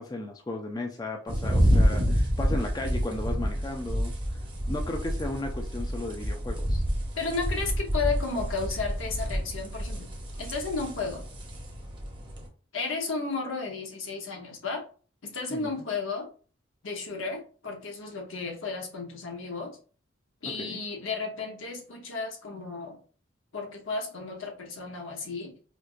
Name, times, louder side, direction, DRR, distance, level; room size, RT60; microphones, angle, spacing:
voice 1, 0.0-4.1 4.7-6.8 15.5-15.7 20.4-20.8, left 2 dB, 20° left, 3 dB, 0.3 m, -35 dB
sound 1, 1.3-12.5, equal, 25° right, 0.7 m, -28 dB
voice 2, 7.1-10.1 10.4-11.2 12.7-14.9 15.2-16.3 16.8-19.8 20.4-23.0 23.5-25.5, left 4 dB, 80° left, 2 dB, 0.9 m, -33 dB
4.4 x 2.4 x 2.4 m, 0.40 s
head